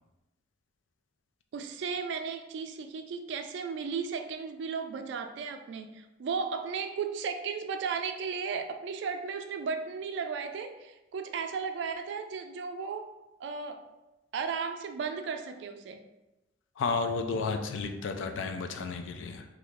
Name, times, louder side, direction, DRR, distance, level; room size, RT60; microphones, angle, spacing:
voice 1, 1.5-13.1 13.4-13.8 14.3-16.1, right 5 dB, 65° right, 8 dB, 0.3 m, -35 dB
voice 2, 16.8-19.4, left 4 dB, 80° left, 6 dB, 0.4 m, -32 dB
3.0 x 2.4 x 3.4 m, 1.0 s
head